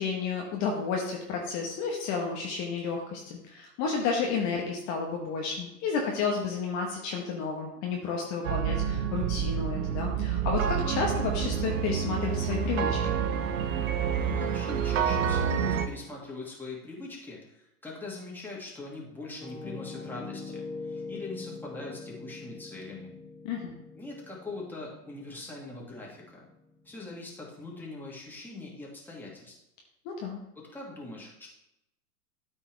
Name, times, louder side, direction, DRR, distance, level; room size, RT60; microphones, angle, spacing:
voice 1, 0.0-13.2 23.4-23.8 30.0-30.4, left 5 dB, 35° left, 1 dB, 1.3 m, -31 dB
sound 1, 8.4-15.9, right 7 dB, 55° right, 0.9 m, -28 dB
voice 2, 14.2-23.2 23.9-26.4 26.8-29.6 30.5-31.5, left 2 dB, 5° left, -4 dB, 2.4 m, -42 dB
Piano, 19.4-27.2, left 4 dB, 85° left, 1.9 m, -43 dB
13.0 x 4.4 x 3.4 m, 0.85 s
hypercardioid pair, 105°, 47 cm